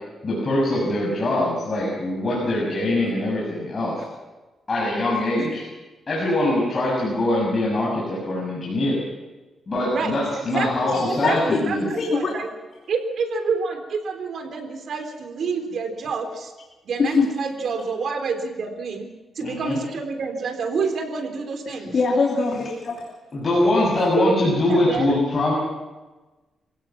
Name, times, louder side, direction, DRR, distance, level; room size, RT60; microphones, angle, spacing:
voice 1, 0.2-4.0 4.7-5.7 6.1-9.0 9.7-11.9 19.4-19.8 23.3-25.5, left 1 dB, 35° left, -5 dB, 7.0 m, -23 dB
voice 2, 9.9-11.4 11.6-12.5 12.9-16.5 16.8-19.1 19.3-21.9 24.0-25.2, right 4 dB, 60° right, 5 dB, 3.8 m, -28 dB
voice 3, 10.9-11.6 12.0-12.3 17.0-17.3 21.7-23.0, left 4 dB, 50° left, 0 dB, 2.9 m, -23 dB
27.5 x 16.0 x 6.1 m, 1.2 s
cardioid pair, 125°, 0 cm